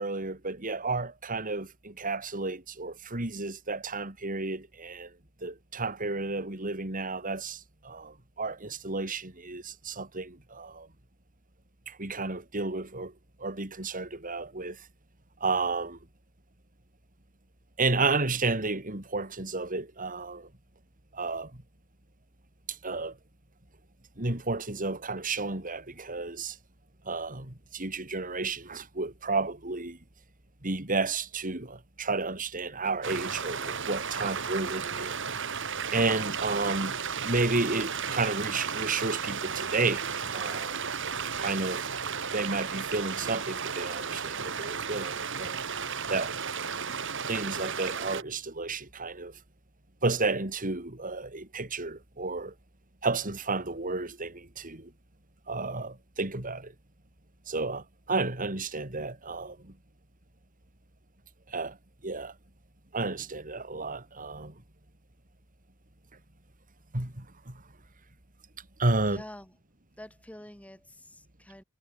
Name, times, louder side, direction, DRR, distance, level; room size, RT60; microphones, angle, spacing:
voice 1, 0.0-5.1 5.4-10.9 11.9-13.1 13.4-14.9 15.4-16.0 17.8-20.5 21.1-21.5 22.7-23.2 24.2-26.6 27.1-30.0 30.6-35.2 35.9-37.0 37.2-40.1 40.3-40.8 41.4-41.9 42.3-45.6 46.1-46.3 47.3-49.4 50.0-52.5 53.0-54.9 55.5-56.7 57.5-59.7 61.5-61.8 62.0-62.3 62.9-64.6 66.9-67.6 68.8-69.2, right 3 dB, 40° right, 3.6 m, -32 dB
sound 1, 33.0-48.2, right 6 dB, 60° right, 6.2 m, -34 dB
voice 2, 69.0-69.5 70.0-71.6, left 1 dB, 5° left, 4.4 m, -47 dB
head